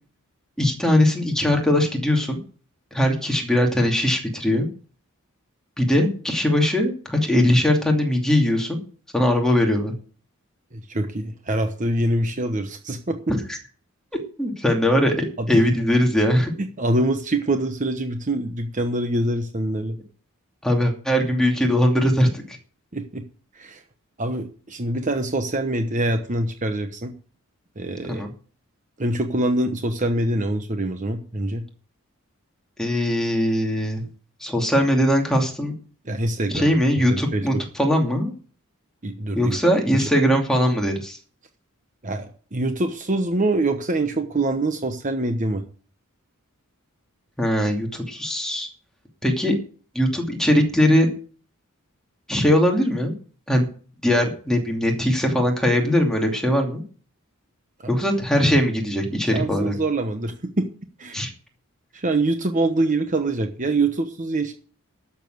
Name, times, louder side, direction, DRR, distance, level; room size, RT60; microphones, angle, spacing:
voice 1, 0.6-2.4 2.9-4.7 5.8-8.8 9.1-9.9 13.5-13.6 14.4-16.5 20.6-22.6 28.1-28.3 32.8-34.0 34.4-35.7 36.5-38.3 39.3-41.2 47.4-48.7 49.2-49.6 49.9-51.1 52.3-53.1 53.5-53.7 54.0-56.8 57.9-59.7 61.1-61.3, left 1 dB, 5° left, 1 dB, 2.7 m, -20 dB
voice 2, 10.7-13.3 15.4-15.6 16.8-20.0 22.9-23.2 23.5-23.8 24.2-27.1 27.8-28.3 29.0-31.6 36.0-36.7 37.1-37.6 39.0-39.6 39.9-40.1 42.0-45.6 57.8-57.9 59.3-60.7 61.0-61.2 61.9-64.5, right 2 dB, 35° right, 6 dB, 1.1 m, -25 dB
12.0 x 7.4 x 7.8 m, 0.42 s
head